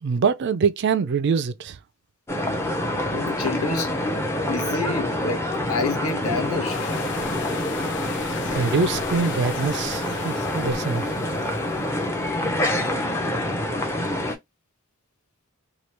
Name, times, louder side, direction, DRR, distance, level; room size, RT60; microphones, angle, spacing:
voice 1, 0.0-1.8 8.5-11.2, right 5 dB, 50° right, 0.3 m, -24 dB
sound 1, 2.3-14.3, left 1 dB, 10° left, 0.6 m, -26 dB
voice 2, 3.0-3.9 4.5-6.9, left 4 dB, 80° left, 1.0 m, -28 dB
sound 2, 6.7-12.5, left 7 dB, 55° left, 0.4 m, -37 dB
2.9 x 2.3 x 3.2 m
head